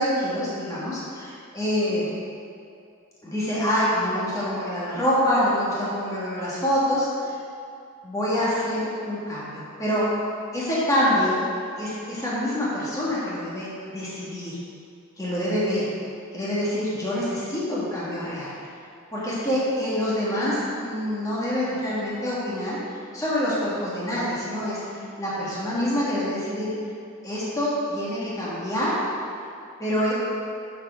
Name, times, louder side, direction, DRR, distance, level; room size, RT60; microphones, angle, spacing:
voice 1, 0.0-2.1 3.2-7.1 8.0-10.1 10.5-11.4 11.8-14.6 15.2-15.9 16.3-18.5 19.1-22.8 23.1-24.8 25.2-26.7 27.2-29.0 29.8-30.1, equal, 15° left, -8 dB, 1.6 m, -26 dB
6.6 x 4.7 x 5.6 m, 2.5 s
head